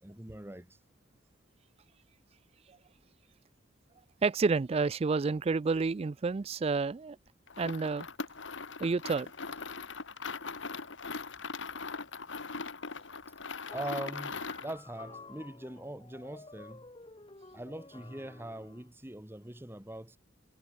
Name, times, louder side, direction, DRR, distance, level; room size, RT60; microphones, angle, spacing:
voice 1, 0.0-0.8 13.7-16.9 17.5-20.2, right 1 dB, 10° right, 1.3 m, -42 dB
voice 2, 4.2-7.2 7.6-8.1 8.8-9.3, right 4 dB, 30° right, 0.3 m, -29 dB
sound 1, 7.5-14.8, left 4 dB, 70° left, 1.8 m, -40 dB
sound 2, 13.7-18.9, left 3 dB, 25° left, 1.4 m, -52 dB
head